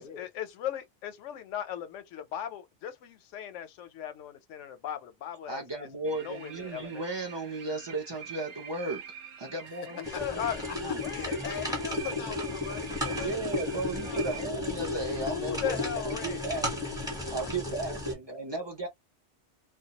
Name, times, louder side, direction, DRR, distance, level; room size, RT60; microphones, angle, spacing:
voice 1, 0.0-5.6 6.1-7.0 9.9-11.4 15.2-16.4, left 10 dB, 90° left, 0.9 m, -37 dB
voice 2, 5.5-9.0 9.4-10.5 10.8-11.0 13.2-16.7 17.3-18.9, right 2 dB, 35° right, 0.4 m, -35 dB
sound 1, 6.0-14.5, right 7 dB, 75° right, 0.9 m, -46 dB
voice 3, 9.7-10.2 10.7-14.2 17.2-17.3, left 9 dB, 55° left, 0.6 m, -42 dB
sound 2, 10.0-18.1, left 2 dB, 5° right, 0.8 m, -34 dB
2.2 x 2.2 x 2.8 m
omnidirectional pair, 1.2 m